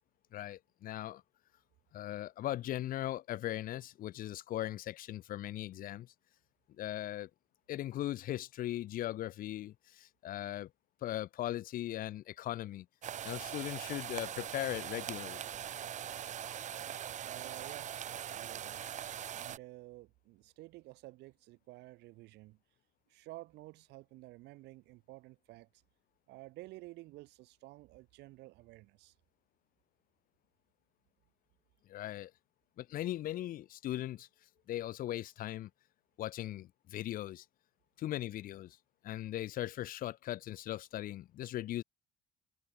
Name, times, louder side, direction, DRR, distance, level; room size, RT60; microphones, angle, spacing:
voice 1, 0.3-1.2 1.9-6.1 6.8-7.3 7.7-10.7 11.0-12.9 13.2-15.4 31.9-32.3 32.8-34.3 34.7-35.7 36.2-37.5 38.0-38.8 39.0-41.8, left 13 dB, 55° left, 0.5 m, -39 dB
sound 1, 13.0-19.6, right 10 dB, 45° right, 0.7 m, -41 dB
voice 2, 17.2-18.9 19.3-22.6 23.1-25.7 26.3-29.1, right 20 dB, 85° right, 1.7 m, -52 dB
cardioid pair, 110°, 17 cm